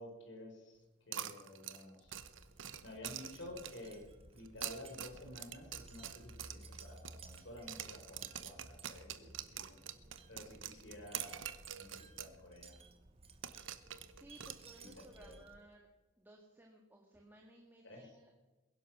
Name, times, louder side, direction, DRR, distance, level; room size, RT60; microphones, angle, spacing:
voice 1, 0.0-2.2 2.8-9.8 10.3-12.7 14.8-15.4 17.8-18.2, left 1 dB, 65° left, 1 dB, 4.8 m, -52 dB
sound 1, 1.1-3.9 4.5-7.4 7.7-12.4 12.6-12.7 13.4-15.1, right 10 dB, 75° right, 0.9 m, -46 dB
Wind chime, 2.0-15.8, right 2 dB, 30° right, 1.2 m, -58 dB
voice 2, 14.2-15.8 16.2-18.3, right 1 dB, 10° right, 0 dB, 1.8 m, -59 dB
21.5 x 11.0 x 6.1 m, 1.2 s
head